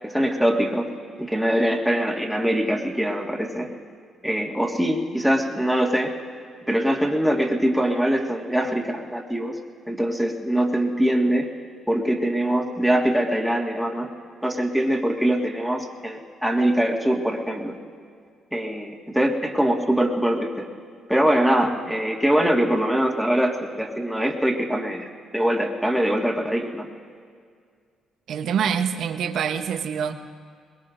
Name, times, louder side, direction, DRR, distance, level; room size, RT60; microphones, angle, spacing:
voice 1, 0.0-0.9 1.2-3.7 4.2-6.1 6.7-9.6 9.9-11.5 11.9-14.1 14.4-17.8 18.5-20.7 21.1-25.1 25.3-26.9, equal, ahead, 1 dB, 1.8 m, -23 dB
voice 2, 28.3-30.1, right 7 dB, 70° right, 7 dB, 0.9 m, -25 dB
23.0 x 21.0 x 2.6 m, 2.1 s
cardioid pair, 90°, 0 cm